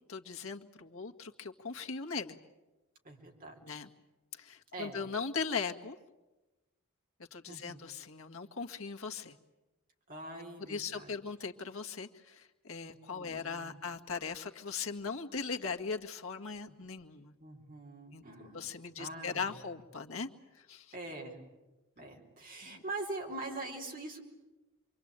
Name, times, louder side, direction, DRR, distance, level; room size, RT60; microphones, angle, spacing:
voice 1, 0.1-2.4 3.6-3.9 4.3-6.0 7.3-9.4 10.7-17.3 18.1-18.2 18.5-20.3 20.5-20.9 22.6-22.8, left 5 dB, 65° left, 3 dB, 1.9 m, -39 dB
voice 2, 3.0-3.8 4.7-5.0 7.5-7.9 10.1-11.1 12.8-13.8 16.7-16.8 17.4-19.8 20.9-21.4 22.0-24.3, right 2 dB, 40° right, 2 dB, 4.5 m, -44 dB
27.5 x 24.0 x 9.0 m, 1.1 s
head